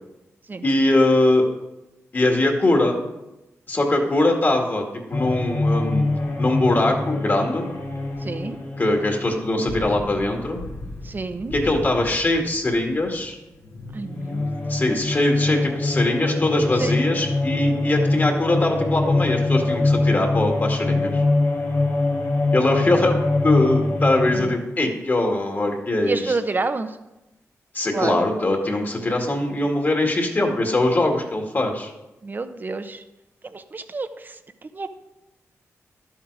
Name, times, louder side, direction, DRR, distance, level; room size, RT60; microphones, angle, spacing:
voice 1, 0.6-1.5 2.1-3.0 3.7-6.1 6.4-7.7 8.8-10.6 11.5-13.4 14.7-21.2 22.5-26.4 27.7-31.9, left 2 dB, 35° left, 2 dB, 2.1 m, -21 dB
sound 1, 5.1-13.3 13.6-24.5, left 2 dB, 90° left, 2.9 m, -24 dB
voice 2, 8.2-8.6 11.0-11.5 13.9-14.5 16.8-16.9 24.3-24.5 26.0-27.0 27.9-28.2 32.2-33.0 33.4-34.9, right 3 dB, 35° right, 10 dB, 0.8 m, -29 dB
12.0 x 7.3 x 4.8 m, 0.96 s
cardioid pair, 85°, 5 cm